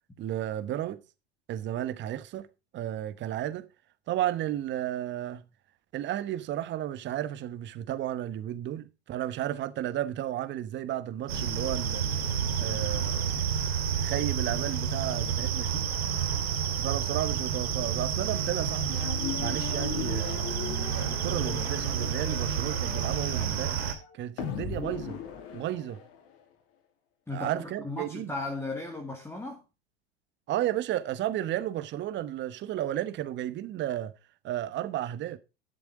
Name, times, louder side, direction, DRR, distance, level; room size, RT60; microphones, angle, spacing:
voice 1, 0.2-1.0 1.5-2.5 2.7-3.7 4.1-5.4 5.9-12.1 12.6-13.3 13.9-15.9 16.8-19.0 19.4-20.5 20.9-23.8 24.1-25.2 25.5-26.0 27.3-28.3 30.5-34.1 34.4-35.4, right 12 dB, 35° right, 1.1 m, -33 dB
sound 1, 11.3-23.9, right 7 dB, 70° right, 2.6 m, -30 dB
sound 2, 18.9-26.4, left 9 dB, 45° left, 2.7 m, -39 dB
voice 2, 27.3-29.6, left 2 dB, 10° left, 2.4 m, -36 dB
12.0 x 6.9 x 4.9 m
hypercardioid pair, 90°, 32 cm